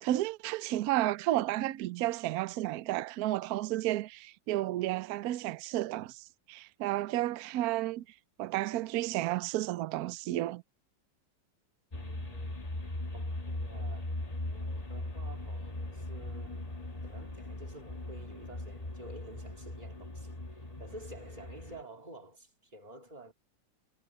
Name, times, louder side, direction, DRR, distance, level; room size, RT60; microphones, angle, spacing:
voice 1, 0.0-8.0 8.4-10.6, right 15 dB, 70° right, 1.0 m, -32 dB
sound 1, 11.9-21.8, left 1 dB, 20° left, 1.6 m, -39 dB
voice 2, 11.9-12.7 13.1-14.1 14.4-23.3, right 1 dB, 25° right, 2.1 m, -51 dB
omnidirectional pair, 2.0 m